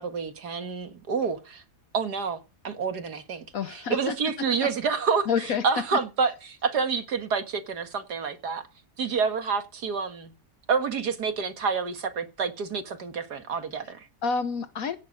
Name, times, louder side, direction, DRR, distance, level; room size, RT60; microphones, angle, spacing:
voice 1, 0.0-1.6 1.9-3.5 3.7-5.3 5.6-8.7 9.0-10.3 10.7-14.1, right 5 dB, 85° right, 2.3 m, -28 dB
voice 2, 3.5-4.6 5.3-5.9 13.8-13.9 14.2-15.0, left 6 dB, 65° left, 1.2 m, -29 dB
16.5 x 7.5 x 5.5 m
omnidirectional pair, 1.7 m